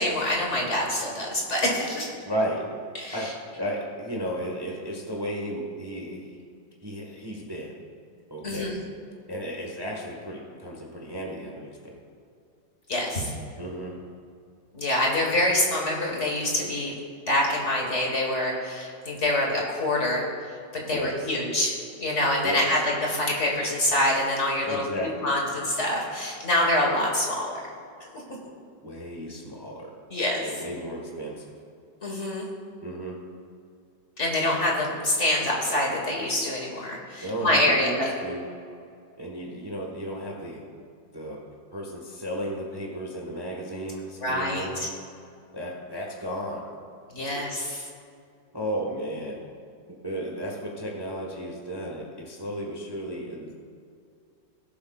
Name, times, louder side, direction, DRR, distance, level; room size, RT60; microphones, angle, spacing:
voice 1, 0.0-2.1 3.0-3.2 8.4-8.8 12.9-13.3 14.7-16.9 17.3-20.2 20.9-21.7 22.0-24.8 25.2-27.7 30.1-30.4 32.0-32.5 34.2-38.1 44.2-44.9 47.1-47.8, left 1 dB, 40° left, -1 dB, 1.7 m, -25 dB
voice 2, 2.2-2.6 3.1-6.4 6.8-7.7 8.3-8.8 9.3-12.0 13.6-14.0 20.9-21.3 22.4-22.8 24.6-25.4 28.8-29.9 30.4-31.5 32.8-33.2 37.2-38.5 39.2-40.6 41.1-41.4 41.7-44.9 45.5-46.6 47.2-47.4 48.5-49.4 50.0-53.5, equal, 15° right, -1 dB, 1.1 m, -34 dB
19.0 x 8.0 x 2.4 m, 2.4 s
omnidirectional pair, 2.0 m